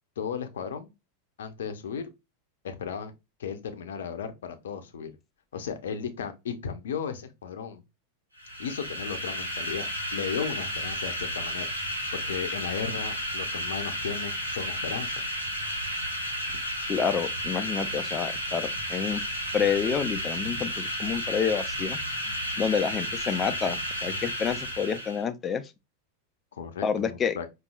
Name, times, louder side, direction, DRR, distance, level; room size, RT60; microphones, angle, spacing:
voice 1, 0.2-0.9 1.4-2.1 2.6-3.1 3.4-5.1 5.5-7.8 8.6-9.9 10.1-15.2 16.5-16.6 26.5-27.5, left 7 dB, 60° left, 0.7 m, -35 dB
sound 1, 8.4-25.2, equal, 85° right, 1.4 m, -32 dB
voice 2, 16.9-19.2 19.5-22.0 22.6-25.6 26.8-27.4, left 7 dB, 25° left, 0.5 m, -28 dB
5.3 x 2.7 x 2.3 m
figure-of-eight pair, 90°, 0 cm